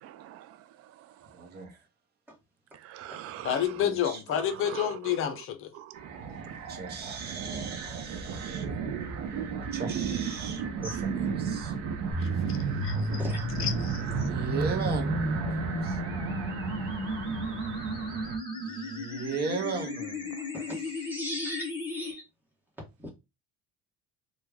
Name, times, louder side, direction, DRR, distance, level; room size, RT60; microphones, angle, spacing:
voice 1, 0.0-1.1 2.7-3.6 4.3-5.3 5.7-6.1 6.5-6.6, right 12 dB, 50° right, 0.5 m, -43 dB
voice 2, 1.3-1.8 3.8-4.2 6.7-8.7 9.0-9.1 9.7-11.7 12.5-12.6 14.2-15.4 15.8-16.0 18.5-20.3 20.7-21.2, right 4 dB, 35° right, 0.8 m, -37 dB
voice 3, 3.4-5.7 12.2-13.2 13.6-14.3, left 9 dB, 45° left, 0.6 m, -30 dB
sound 1, 5.9-18.4, right 6 dB, 85° right, 0.9 m, -34 dB
sound 2, 12.1-22.1, equal, 15° left, 1.0 m, -34 dB
voice 4, 21.0-22.2 23.0-23.1, equal, 5° right, 1.3 m, -38 dB
3.0 x 2.3 x 3.5 m
cardioid pair, 140°, 30 cm